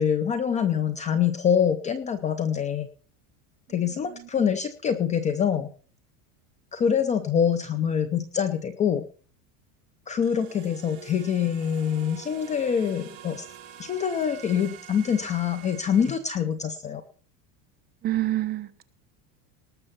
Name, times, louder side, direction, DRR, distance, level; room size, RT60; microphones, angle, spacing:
voice 1, 0.0-2.9 3.7-5.7 6.7-9.0 10.1-13.5 13.8-17.0, left 8 dB, 15° left, 11 dB, 0.6 m, -25 dB
sound 1, 10.2-16.2, right 11 dB, 50° right, 3.1 m, -46 dB
voice 2, 18.0-18.9, right 15 dB, 25° right, 9 dB, 1.0 m, -28 dB
19.0 x 6.8 x 5.7 m, 0.41 s
supercardioid pair, 165°, 42 cm